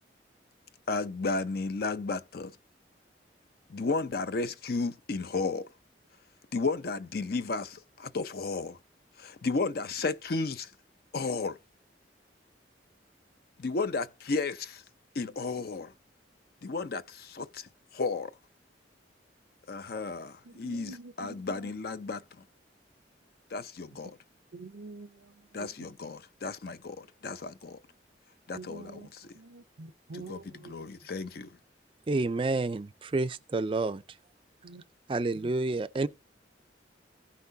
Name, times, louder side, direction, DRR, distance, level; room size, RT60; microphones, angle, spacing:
voice 1, 0.9-2.6 3.7-5.7 6.5-8.8 9.2-10.7 11.1-11.6 13.6-14.8 15.2-15.9 16.6-18.3 19.7-22.2 23.5-24.2 25.5-27.8 28.5-29.3 30.1-31.5, left 3 dB, 55° left, 0.5 m, -33 dB
voice 2, 20.4-21.7 24.0-24.1 24.5-25.9 28.5-29.1 29.3-30.9 34.6-34.8 35.4-35.5, right 3 dB, 80° right, 0.6 m, -47 dB
voice 3, 32.1-34.0 35.1-36.1, right 3 dB, 30° right, 0.4 m, -29 dB
15.5 x 5.9 x 2.7 m
head